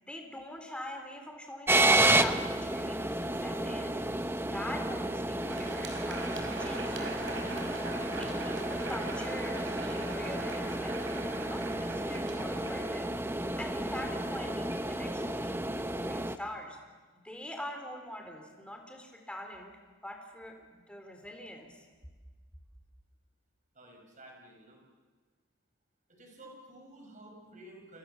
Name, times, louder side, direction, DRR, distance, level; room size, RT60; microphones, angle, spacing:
voice 1, 0.0-4.0 4.4-7.8 8.2-13.1 13.6-16.8 17.2-19.7 20.0-21.8, left 1 dB, 5° left, 3 dB, 4.0 m, -43 dB
sound 1, 1.7-16.4, right 1 dB, 10° right, 0.8 m, -31 dB
Crowd, 5.3-13.7, right 3 dB, 60° right, 5.5 m, -42 dB
voice 2, 23.8-24.8 26.1-28.0, right 1 dB, 35° right, 1 dB, 7.0 m, -52 dB
29.5 x 27.0 x 7.3 m, 1.4 s
head